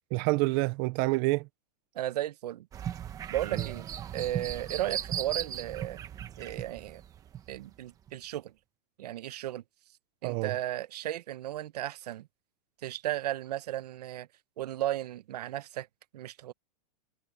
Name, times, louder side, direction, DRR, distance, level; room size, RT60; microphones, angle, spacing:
voice 1, 0.1-1.5 3.5-3.7 10.2-10.6, right 23 dB, 30° right, 0.6 m, -28 dB
voice 2, 1.9-2.7 3.3-3.9 4.1-6.0 6.4-7.0 7.5-8.5 9.0-9.6 10.2-12.3 12.8-14.3 14.6-15.9 16.1-16.5, right 13 dB, 70° right, 1.0 m, -35 dB
sound 1, 2.7-7.7 8.1-8.2, right 9 dB, 15° right, 1.1 m, -37 dB
supercardioid pair, 165°, 21 cm